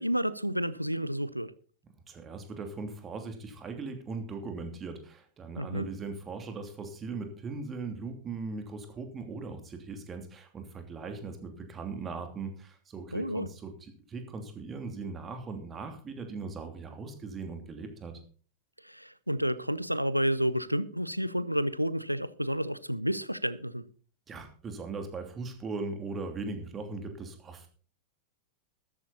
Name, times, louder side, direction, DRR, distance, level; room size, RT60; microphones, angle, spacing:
voice 1, 0.0-1.5 5.6-5.9 13.1-13.5 18.8-23.8, equal, 90° right, 0.7 m, -30 dB
voice 2, 2.1-18.2 24.3-27.7, right 4 dB, 20° right, 2.9 m, -39 dB
13.5 x 12.0 x 4.1 m
figure-of-eight pair, 90°, 0 cm